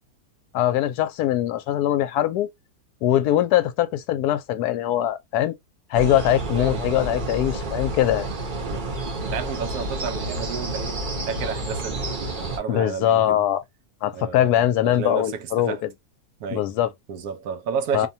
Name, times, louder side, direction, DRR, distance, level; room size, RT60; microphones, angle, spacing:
voice 1, 0.5-2.5 3.0-5.5 5.9-8.3 12.7-13.6 14.0-15.8 16.5-16.9 17.9-18.1, left 12 dB, 85° left, 1.1 m, -22 dB
sound 1, 5.9-12.6, right 2 dB, 40° right, 0.8 m, -29 dB
voice 2, 6.6-6.9 8.7-8.9 9.2-13.5 14.1-15.8 16.4-16.7 17.1-18.1, right 6 dB, 75° right, 1.0 m, -32 dB
2.7 x 2.2 x 2.5 m
omnidirectional pair, 1.6 m